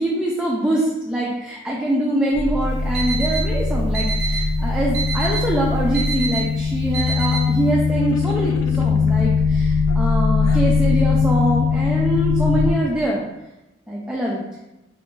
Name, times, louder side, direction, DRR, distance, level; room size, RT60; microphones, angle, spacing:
voice 1, 0.0-13.2 13.9-14.4, right 1 dB, 5° right, -5 dB, 0.3 m, -24 dB
sound 1, 2.3-12.7, left 4 dB, 45° left, 0.7 m, -20 dB
Alarm, 2.7-7.7, right 5 dB, 55° right, 0.5 m, -29 dB
sound 2, 7.9-9.3 9.9-10.7, left 4 dB, 80° left, 0.3 m, -34 dB
2.8 x 2.5 x 3.6 m, 0.98 s
head